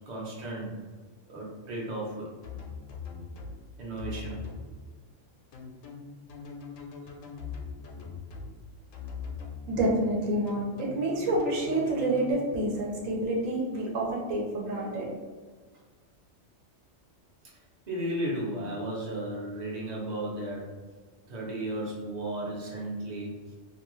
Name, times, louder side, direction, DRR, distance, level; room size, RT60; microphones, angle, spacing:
voice 1, 0.1-0.8 1.3-2.3 3.8-4.5 17.9-20.8 21.3-23.5, right 1 dB, 40° right, -4 dB, 0.7 m, -34 dB
sound 1, 2.4-3.6 4.0-4.6 5.5-8.5 8.9-9.6 10.5-12.3, left 5 dB, 75° left, 0.9 m, -41 dB
voice 2, 9.7-15.1, right 1 dB, 85° right, -2 dB, 1.1 m, -28 dB
2.6 x 2.3 x 3.0 m, 1.4 s
omnidirectional pair, 1.4 m